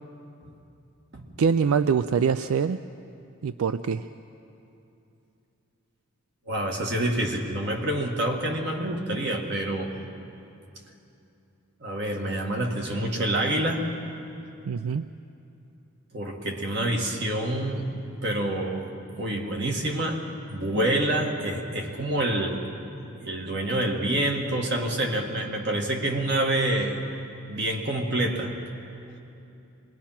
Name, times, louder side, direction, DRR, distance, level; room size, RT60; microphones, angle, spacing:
voice 1, 1.4-2.8 3.4-4.1 14.7-15.1, right 6 dB, 80° right, 12 dB, 0.4 m, -24 dB
voice 2, 6.5-10.0 11.8-13.9 16.1-17.9 18.2-22.6 23.2-27.0 27.5-28.6, right 1 dB, 50° right, 1 dB, 2.0 m, -27 dB
24.5 x 21.0 x 5.9 m, 2.8 s
head